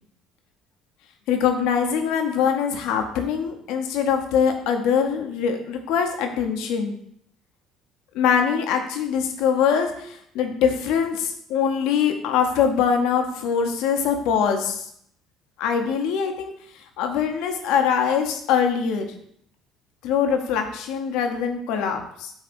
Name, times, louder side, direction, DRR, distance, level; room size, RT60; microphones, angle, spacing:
voice 1, 1.3-7.0 8.1-14.8 15.6-16.5 17.0-19.0 20.0-22.3, left 7 dB, 75° left, 5 dB, 0.7 m, -23 dB
7.8 x 2.7 x 2.5 m, 0.69 s
supercardioid pair, 70°, 0 cm